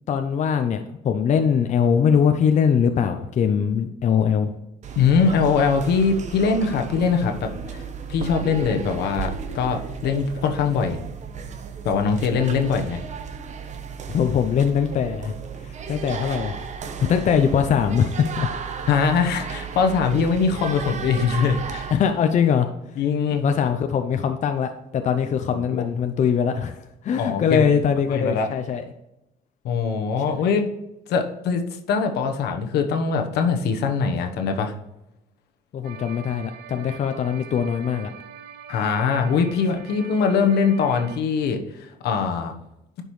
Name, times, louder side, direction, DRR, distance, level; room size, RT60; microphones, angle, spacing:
voice 1, 0.1-0.8 1.0-4.5 14.1-15.3 15.6-16.6 17.0-18.5 21.9-22.7 23.3-28.8 35.7-38.1, left 7 dB, 45° left, 7 dB, 0.6 m, -22 dB
sound 1, 4.8-21.9, right 6 dB, 45° right, 0.9 m, -34 dB
voice 2, 5.0-7.8 8.1-11.0 11.8-13.0 18.9-21.9 23.0-23.4 25.5-25.9 27.2-27.7 28.1-28.5 29.6-30.7 31.1-34.7 38.7-42.5, left 5 dB, 75° left, 5 dB, 1.1 m, -22 dB
sound 2, 35.8-41.2, right 8 dB, 75° right, 0.7 m, -43 dB
10.0 x 5.3 x 3.2 m, 0.89 s
cardioid pair, 110°, 17 cm